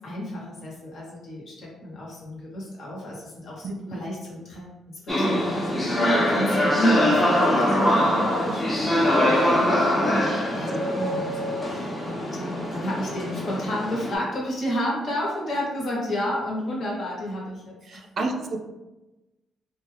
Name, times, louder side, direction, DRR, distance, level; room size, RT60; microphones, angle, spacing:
voice 1, 0.0-18.3, equal, 60° left, -4 dB, 1.0 m, -31 dB
sound 1, 5.1-14.2, left 1 dB, 25° left, 0.7 m, -23 dB
voice 2, 17.8-18.6, right 3 dB, 50° right, 4 dB, 0.4 m, -31 dB
2.5 x 2.2 x 3.2 m, 1.0 s
cardioid pair, 90°, 0 cm